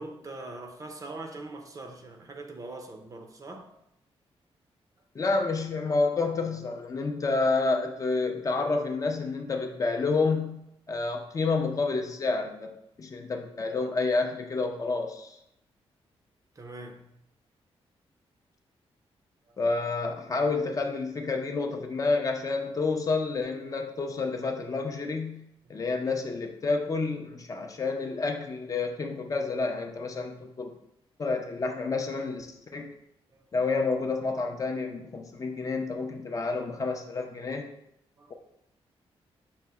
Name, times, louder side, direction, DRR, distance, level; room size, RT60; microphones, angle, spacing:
voice 1, 0.0-3.7 16.6-17.0 19.5-19.6 33.3-33.4 38.2-38.3, right 2 dB, 35° right, 0.5 m, -42 dB
voice 2, 5.1-15.4 19.6-25.4 25.7-30.7 31.2-32.9 33.5-37.7, left 3 dB, 35° left, 0.5 m, -29 dB
5.5 x 2.1 x 4.6 m
wide cardioid pair, 130°, 10 cm